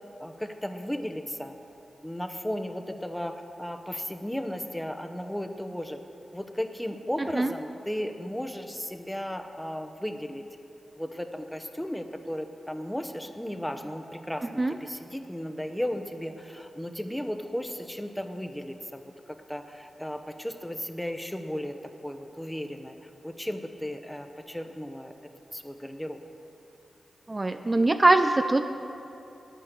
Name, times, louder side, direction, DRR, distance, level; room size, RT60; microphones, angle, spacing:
voice 1, 0.2-1.6 2.0-6.0 6.3-10.4 11.0-23.0 23.2-25.1 25.5-26.2, equal, 5° left, 7 dB, 0.9 m, -35 dB
voice 2, 7.2-7.5 14.6-14.8 27.3-28.6, right 2 dB, 30° right, 8 dB, 0.4 m, -22 dB
9.4 x 9.1 x 6.6 m, 2.7 s
cardioid pair, 55°, 0 cm